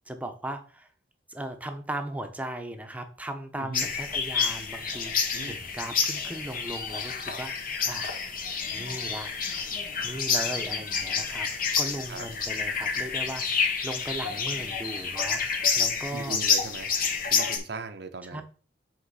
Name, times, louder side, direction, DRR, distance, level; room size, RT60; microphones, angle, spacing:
voice 1, 0.1-0.9 1.3-7.5 7.8-8.1 8.7-9.3 10.0-15.4 15.8-16.4 18.2-18.4, right 1 dB, 10° right, 0.9 m, -37 dB
voice 2, 3.6-3.9 5.3-5.6 12.1-12.3 16.1-16.9 17.3-18.4, right 3 dB, 65° right, 0.7 m, -38 dB
sound 1, 3.7-17.6, left 5 dB, 50° left, 1.2 m, -29 dB
7.7 x 3.7 x 4.9 m
head